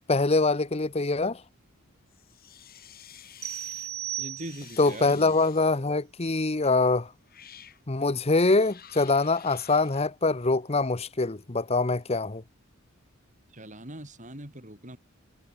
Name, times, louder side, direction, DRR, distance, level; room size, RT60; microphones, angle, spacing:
voice 1, 0.1-1.4 4.8-7.1 7.9-12.4, left 3 dB, 30° left, 0.9 m, -24 dB
sound 1, 2.1-3.9 4.4-5.9 6.6-6.8 7.2-7.8 8.5-10.0, left 9 dB, 45° left, 6.0 m, -51 dB
sound 2, 3.4-4.9, right 12 dB, 80° right, 5.0 m, -36 dB
voice 2, 4.2-5.3 13.5-15.0, right 1 dB, 35° right, 6.6 m, -41 dB
head